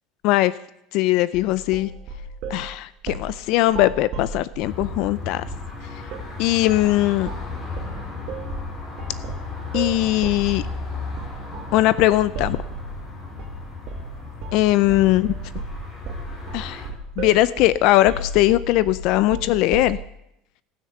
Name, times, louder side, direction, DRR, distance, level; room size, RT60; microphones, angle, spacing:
voice 1, 0.9-1.9 2.5-5.4 5.9-6.0 6.4-7.3 9.7-10.6 11.7-12.6 14.5-15.4 16.5-16.9 17.2-20.0, left 16 dB, 55° left, 17 dB, 0.4 m, -20 dB
sound 1, 1.3-2.6 3.1-3.3 3.7-5.0 5.5-5.7 6.1-6.3 6.7-6.9 7.2-7.5 7.8-13.0 13.4-13.6 13.9-14.1 14.4-14.6 14.9-20.0, right 3 dB, 45° right, 2.2 m, -34 dB
sound 2, 4.6-16.9, left 4 dB, 20° left, 3.2 m, -35 dB
18.0 x 6.6 x 8.1 m, 0.79 s
cardioid pair, 165°, 0 cm